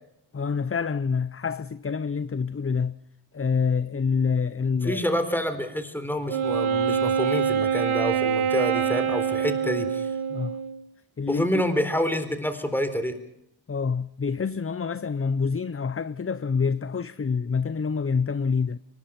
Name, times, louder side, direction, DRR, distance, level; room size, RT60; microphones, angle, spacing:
voice 1, 0.3-3.0 3.3-5.0 10.3-10.6 11.2-11.6 13.7-18.8, left 5 dB, 30° left, 0.7 m, -27 dB
voice 2, 4.8-10.1 11.3-13.2, equal, 5° left, 4.0 m, -27 dB
Wind instrument woodwind instrument, 6.3-10.8, right 7 dB, 80° right, 1.5 m, -25 dB
24.0 x 20.5 x 6.0 m
wide cardioid pair, 75°, 48 cm